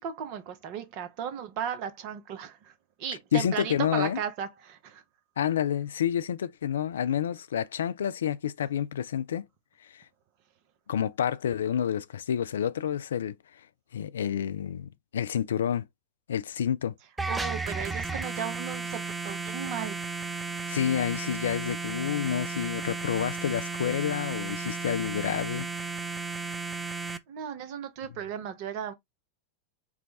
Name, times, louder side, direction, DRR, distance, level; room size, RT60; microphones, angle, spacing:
voice 1, 0.0-2.6 3.0-5.0 17.3-20.0 27.3-28.9, right 8 dB, 45° right, 0.9 m, -35 dB
voice 2, 3.3-4.2 5.4-9.4 9.9-10.0 10.9-13.4 13.9-15.9 16.3-16.9 20.7-25.7, left 9 dB, 65° left, 0.3 m, -29 dB
sound 1, 17.2-27.2, right 4 dB, 10° right, 0.5 m, -34 dB
4.7 x 2.3 x 3.8 m
figure-of-eight pair, 90°, 0 cm